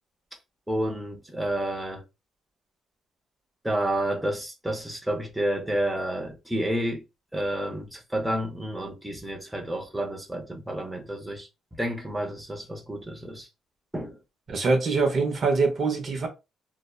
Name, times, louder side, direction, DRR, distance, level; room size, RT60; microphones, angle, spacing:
voice 1, 0.7-2.0 3.6-7.0 7.3-11.5 11.8-13.5 13.9-14.2, right 1 dB, 5° right, 0.6 m, -30 dB
voice 2, 14.5-16.3, right 4 dB, 50° right, 0.6 m, -24 dB
2.6 x 2.1 x 2.2 m
cardioid pair, 90°, 0 cm